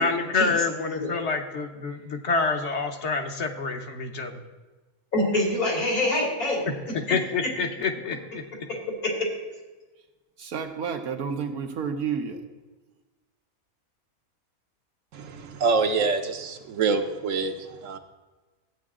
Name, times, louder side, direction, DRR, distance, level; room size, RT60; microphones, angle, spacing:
voice 1, 0.0-4.3 6.9-8.4, left 4 dB, 55° left, 5 dB, 1.1 m, -27 dB
voice 2, 5.1-7.2 8.7-9.3, left 1 dB, 80° left, -2 dB, 3.2 m, -26 dB
voice 3, 10.4-12.4, right 6 dB, 85° right, 5 dB, 1.5 m, -30 dB
voice 4, 15.1-18.0, right 4 dB, 65° right, 6 dB, 1.1 m, -26 dB
13.0 x 8.7 x 3.7 m, 1.2 s
omnidirectional pair, 1.5 m